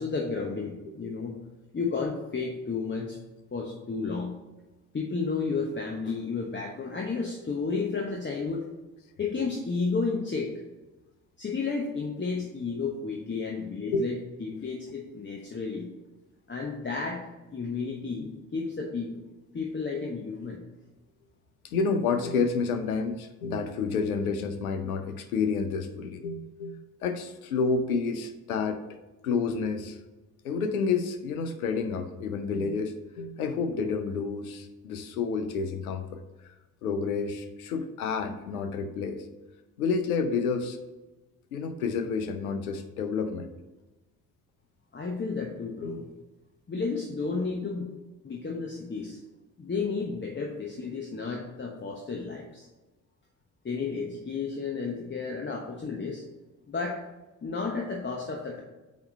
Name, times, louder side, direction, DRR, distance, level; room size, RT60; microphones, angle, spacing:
voice 1, 0.0-1.4 1.7-3.2 3.5-4.3 4.9-8.7 9.2-10.5 11.4-15.9 16.5-17.2 17.5-19.1 19.5-20.6 44.9-46.1 46.7-47.9 48.2-49.2 49.6-52.7 53.6-56.2 56.7-57.0 57.4-58.6, left 4 dB, 25° left, 0 dB, 1.1 m, -32 dB
voice 2, 21.6-28.8 29.2-30.0 30.4-36.2 36.8-39.2 39.8-40.8 41.5-43.5 45.8-46.0, left 5 dB, 80° left, 8 dB, 0.7 m, -29 dB
8.7 x 3.1 x 5.3 m, 1.1 s
figure-of-eight pair, 45°, 42 cm